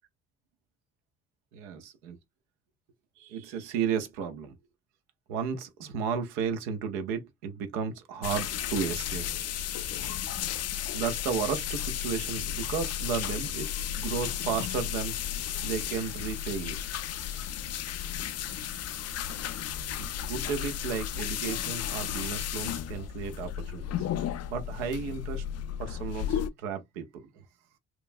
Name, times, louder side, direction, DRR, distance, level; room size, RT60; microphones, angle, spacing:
voice 1, 1.5-2.2 3.2-4.6 5.3-9.3 10.9-13.7 13.9-15.2 15.6-17.4 20.0-25.4 25.8-27.4, right 6 dB, 90° right, 0.6 m, -34 dB
sound 1, 8.2-26.5, left 10 dB, 45° left, 0.4 m, -34 dB
3.0 x 2.2 x 2.5 m
hypercardioid pair, 45°, 35 cm